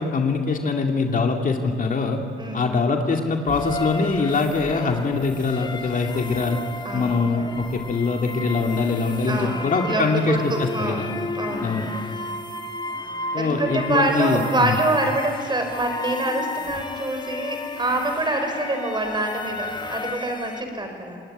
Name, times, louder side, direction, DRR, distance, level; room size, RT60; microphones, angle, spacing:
voice 1, 0.0-2.2 2.5-6.6 6.9-11.1 11.6-11.9 13.3-14.8, left 4 dB, 45° left, 3 dB, 2.4 m, -23 dB
voice 2, 2.4-2.7 6.8-7.3 9.3-11.7 13.4-21.2, right 2 dB, 20° right, 4 dB, 5.7 m, -26 dB
sound 1, 3.5-20.6, left 2 dB, 20° left, 1.8 m, -33 dB
26.0 x 19.5 x 10.0 m, 2.3 s
cardioid pair, 90°, 20 cm